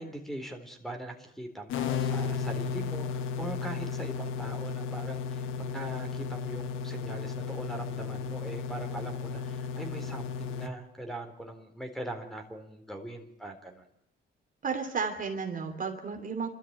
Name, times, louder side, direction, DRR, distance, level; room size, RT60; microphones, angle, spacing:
voice 1, 0.0-13.9, right 1 dB, ahead, 5 dB, 3.9 m, -41 dB
sound 1, 1.7-10.7, left 6 dB, 85° left, 1.2 m, -34 dB
voice 2, 14.6-16.5, right 5 dB, 45° right, 4 dB, 3.0 m, -33 dB
29.0 x 13.5 x 8.9 m, 0.79 s
cardioid pair, 90°, 20 cm